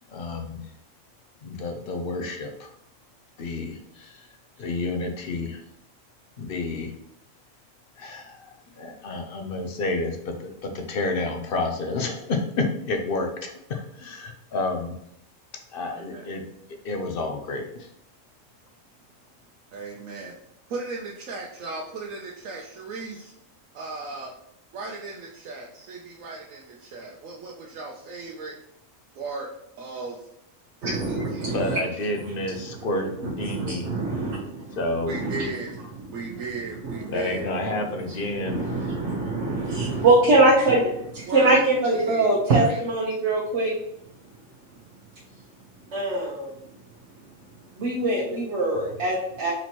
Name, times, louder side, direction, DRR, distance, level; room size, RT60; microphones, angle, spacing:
voice 1, 0.1-0.7 1.4-2.7 3.4-5.6 6.4-6.9 8.0-14.9 15.7-16.4 16.8-17.9 31.1-33.9 34.7-35.1 37.1-38.6, left 2 dB, 55° left, 4 dB, 0.7 m, -30 dB
voice 2, 15.9-16.3 19.7-20.4 20.7-23.3 23.7-24.3 24.7-28.5 29.2-29.5 29.8-30.3 30.8-31.5 35.1-35.8 36.1-37.5 41.3-41.6 41.9-42.8, right 3 dB, 90° right, -1 dB, 1.1 m, -36 dB
voice 3, 30.8-31.8 33.5-34.8 35.1-35.4 36.3-36.4 36.8-36.9 38.4-43.8 45.9-46.5 47.8-49.5, right 2 dB, 60° right, -4 dB, 1.1 m, -23 dB
4.3 x 3.0 x 4.2 m, 0.73 s
omnidirectional pair, 1.3 m